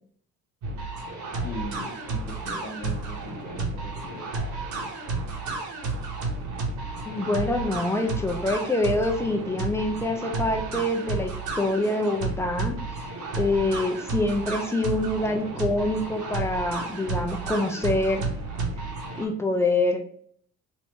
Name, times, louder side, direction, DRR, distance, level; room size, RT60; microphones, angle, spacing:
sound 1, 0.6-19.3, right 3 dB, 65° right, 1.2 m, -32 dB
voice 1, 1.4-4.4, left 2 dB, 30° left, -2 dB, 1.3 m, -39 dB
voice 2, 7.1-13.0 13.4-18.2 19.2-20.0, left 2 dB, 10° left, 4 dB, 0.7 m, -26 dB
3.2 x 2.8 x 2.9 m, 0.63 s
supercardioid pair, 70°, 32 cm